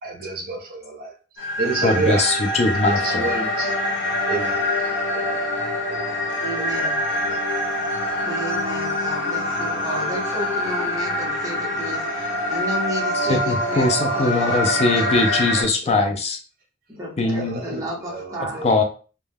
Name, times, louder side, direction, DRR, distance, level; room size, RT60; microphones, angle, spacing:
voice 1, 0.0-2.3 3.0-3.8 4.3-4.7 5.1-5.5 5.9-6.1 6.6-7.4 8.0-8.2 15.3-15.4 17.3-17.7 18.0-18.7, right 3 dB, 50° right, 0.6 m, -30 dB
sound 1, 1.4-15.6, left 1 dB, 70° left, 0.9 m, -25 dB
voice 2, 1.8-3.3 13.1-16.4 17.2-17.8 18.6-18.8, left 3 dB, 35° left, 0.3 m, -21 dB
voice 3, 6.4-7.0 8.2-13.9 14.1-16.1 16.9-18.7, right 1 dB, 20° right, 0.8 m, -32 dB
2.2 x 2.1 x 3.3 m
head